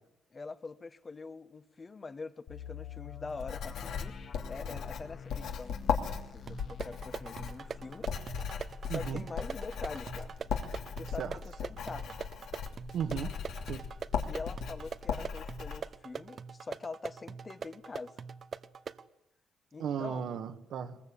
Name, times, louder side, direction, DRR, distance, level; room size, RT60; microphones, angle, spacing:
voice 1, 0.3-4.1 4.5-5.8 6.3-8.1 8.9-10.4 11.0-12.1 14.2-18.1 19.7-20.3, left 4 dB, 30° left, 1.2 m, -44 dB
sound 1, 2.5-12.2 12.5-12.6 13.1-13.4, left 8 dB, 60° left, 2.2 m, -50 dB
Writing, 3.4-15.8, left 6 dB, 75° left, 2.8 m, -37 dB
sound 2, 6.5-19.1, right 6 dB, 50° right, 1.0 m, -43 dB
voice 2, 8.9-9.2 11.2-11.4 12.9-13.3 13.7-13.8 19.8-21.0, right 8 dB, 70° right, 1.8 m, -35 dB
21.5 x 21.5 x 8.7 m
cardioid pair, 90°, 0 cm